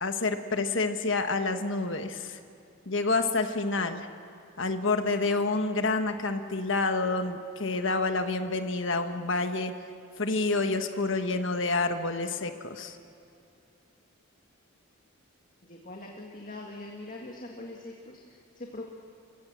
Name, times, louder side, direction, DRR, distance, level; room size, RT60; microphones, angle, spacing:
voice 1, 0.0-2.4 2.8-4.1 4.6-9.7 10.2-13.0, left 3 dB, 60° left, 7 dB, 1.4 m, -28 dB
voice 2, 15.6-18.8, left 2 dB, 40° left, 0 dB, 1.9 m, -42 dB
29.5 x 16.5 x 7.5 m, 2.6 s
head